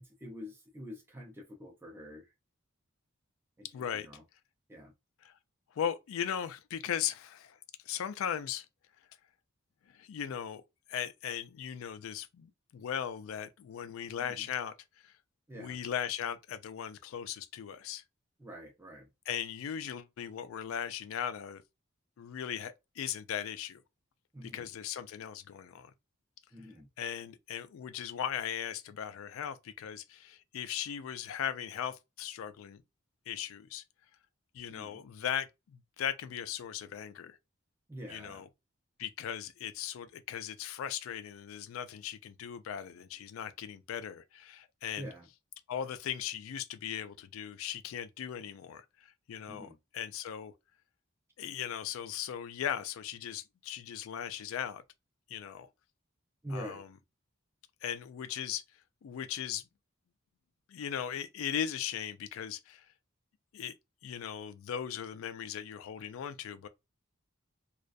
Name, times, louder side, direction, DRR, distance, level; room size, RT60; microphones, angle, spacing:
voice 1, 0.0-2.3 3.6-4.2 4.7-4.9 14.2-14.5 15.5-15.8 18.4-19.1 24.3-24.7 26.5-26.9 34.7-35.0 37.9-38.4 45.0-45.3 49.5-49.8 56.4-56.8, equal, 10° right, 0.5 m, -46 dB
voice 2, 3.7-4.1 5.2-5.3 5.7-7.6 7.8-8.7 9.9-10.6 10.9-15.2 15.5-18.0 19.3-21.6 22.2-23.8 24.4-25.9 27.0-32.8 33.3-33.8 34.5-37.4 38.1-38.5 39.0-45.1 45.7-50.5 51.4-54.8 55.3-55.7 56.5-56.9 57.8-58.6 59.0-59.7 60.7-62.9 63.5-63.7 64.0-66.7, left 9 dB, 75° left, 0.3 m, -38 dB
2.3 x 2.1 x 2.5 m
head